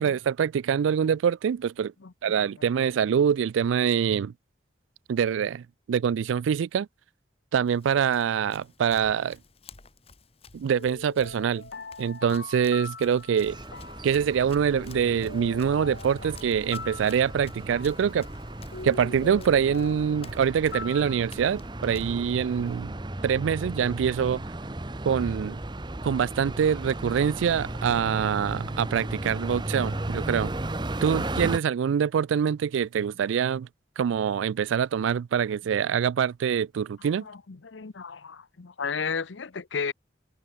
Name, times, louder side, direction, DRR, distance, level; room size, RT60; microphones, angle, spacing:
voice 1, 0.0-1.9 2.2-4.3 5.1-6.9 7.5-9.4 10.5-11.7 12.0-13.6 14.0-18.3 18.8-22.9 23.2-24.4 25.0-25.6 26.0-30.5 31.0-33.7 34.0-37.2, right 7 dB, 85° right, 0.3 m, -25 dB
Run, 7.6-22.8, left 4 dB, 30° left, 1.4 m, -53 dB
sound 1, 10.6-21.3, left 4 dB, 60° left, 1.1 m, -42 dB
sound 2, 13.5-31.6, right 1 dB, 25° right, 0.9 m, -35 dB
voice 2, 37.0-39.9, left 5 dB, 80° left, 0.8 m, -34 dB
head